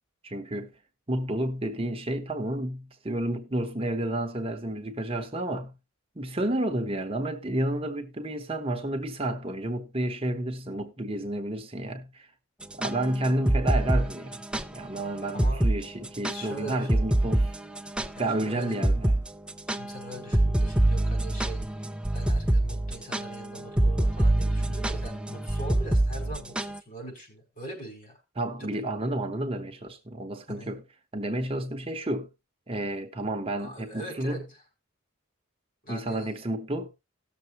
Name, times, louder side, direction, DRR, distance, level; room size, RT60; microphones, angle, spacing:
voice 1, 0.2-0.7 1.1-5.7 6.2-12.3 12.7-14.4 14.7-17.5 18.2-19.2 28.4-30.8 31.1-32.3 32.7-34.4 35.9-36.9, right 1 dB, 25° right, 0.9 m, -31 dB
sound 1, 12.6-14.7 15.0-15.1 15.4-15.8 16.0-18.4 18.8-19.2 19.5-26.8, right 1 dB, 5° right, 0.5 m, -25 dB
voice 2, 15.3-15.7 16.3-17.0 18.1-19.0 19.7-21.9 22.1-28.2 28.6-28.8 30.5-30.7 33.6-34.6 35.8-36.3, right 1 dB, 40° left, 4.7 m, -42 dB
17.5 x 6.9 x 3.0 m
head